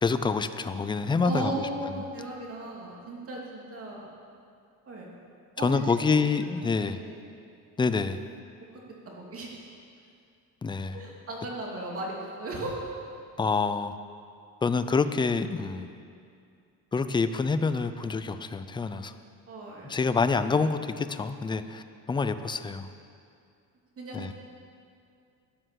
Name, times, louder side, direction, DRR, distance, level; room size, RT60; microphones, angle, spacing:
voice 1, 0.0-1.7 5.6-7.0 7.8-8.2 10.6-11.0 13.4-14.0 14.6-15.9 16.9-19.1 19.9-22.9 24.1-24.3, left 4 dB, 15° left, 11 dB, 0.3 m, -27 dB
voice 2, 1.2-4.1 4.9-5.1 5.6-6.1 6.7-7.4 9.2-9.5 10.9-12.8 19.5-20.0 24.0-24.3, right 2 dB, 35° right, -3 dB, 2.9 m, -36 dB
12.5 x 10.0 x 7.6 m, 2.4 s
cardioid pair, 150°, 39 cm